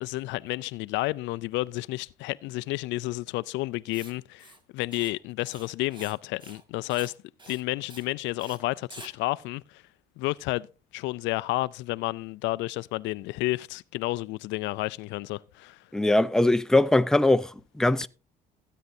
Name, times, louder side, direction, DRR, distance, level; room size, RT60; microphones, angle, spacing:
voice 1, 0.0-7.1 7.5-9.8 10.2-10.7 10.9-15.8, left 19 dB, 80° left, 0.4 m, -31 dB
Writing, 3.9-4.1 4.4-4.6 4.9-5.1 5.4-6.2 6.4-6.6 6.9-7.1 7.4-7.6 7.9-8.1 8.4-8.6 8.9-9.1, right 3 dB, 25° right, 2.0 m, -47 dB
voice 2, 15.9-18.1, left 2 dB, 5° left, 0.6 m, -21 dB
16.5 x 9.3 x 2.7 m
cardioid pair, 90°, 19 cm